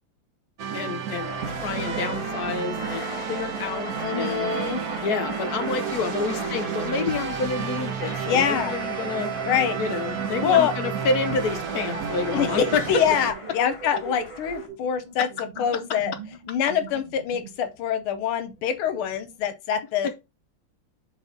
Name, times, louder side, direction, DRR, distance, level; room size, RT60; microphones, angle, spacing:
sound 1, 0.6-13.3, right 8 dB, 65° right, 0.9 m, -31 dB
voice 1, 0.7-1.4 1.6-4.5 5.0-9.3 9.8-13.0 15.2-15.8 20.0-20.1, left 4 dB, 65° left, 0.9 m, -29 dB
sound 2, 1.0-14.7, left 2 dB, 45° left, 0.4 m, -39 dB
voice 2, 4.0-4.8 8.3-8.8 9.4-9.8 10.4-10.7 12.3-15.3 15.6-16.1 16.5-20.1, left 8 dB, 90° left, 1.6 m, -25 dB
sound 3, 5.9-19.5, right 4 dB, 30° right, 1.5 m, -41 dB
4.9 x 4.0 x 5.1 m
omnidirectional pair, 2.3 m